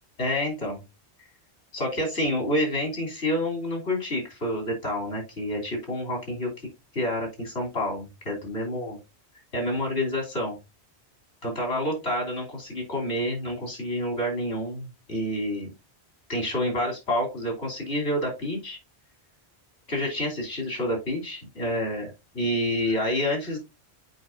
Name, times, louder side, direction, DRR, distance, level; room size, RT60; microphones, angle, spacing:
voice 1, 0.2-0.8 1.7-6.5 6.9-9.0 9.5-10.6 11.4-15.7 16.3-18.8 19.9-23.6, left 1 dB, 75° left, 0 dB, 3.4 m, -28 dB
7.9 x 5.4 x 2.6 m, 0.24 s
omnidirectional pair, 1.1 m